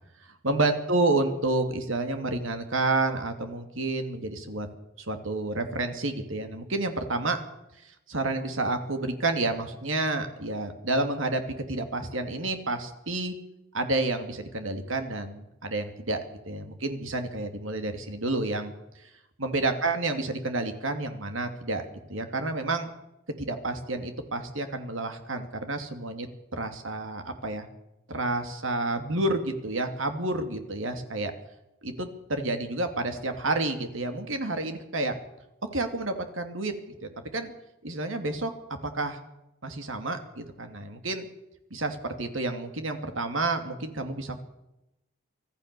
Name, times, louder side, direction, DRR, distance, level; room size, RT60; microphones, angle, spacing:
voice 1, 0.4-4.7 5.0-7.4 7.8-11.4 11.7-13.3 13.7-18.7 19.4-22.9 23.4-26.3 26.5-27.7 28.1-31.3 31.8-35.2 35.7-36.7 37.0-37.5 37.8-38.5 38.8-39.2 39.6-41.3 41.7-44.4, right 2 dB, 75° right, 7 dB, 2.7 m, -30 dB
25.0 x 15.0 x 6.9 m, 0.90 s
head